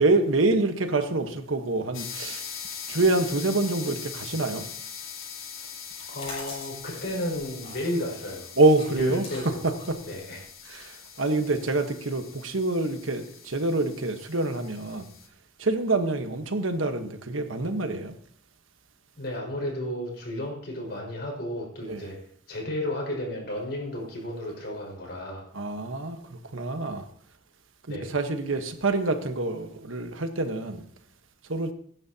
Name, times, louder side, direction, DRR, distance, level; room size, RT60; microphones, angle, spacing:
voice 1, 0.0-2.4 2.9-4.7 8.6-9.3 9.9-10.0 10.7-15.1 15.6-18.1 21.9-22.1 25.5-27.1 27.9-30.8 31.5-31.7, right 2 dB, 80° right, 1.3 m, -26 dB
sound 1, 1.9-15.3, left 7 dB, 80° left, 2.7 m, -41 dB
sound 2, 5.9-11.6, left 2 dB, 30° left, 7.1 m, -44 dB
voice 2, 6.1-8.5 9.0-9.6 10.0-10.5 19.2-22.2 22.5-25.5 27.9-28.1, left 1 dB, 55° left, 5.5 m, -33 dB
21.0 x 10.5 x 2.9 m
head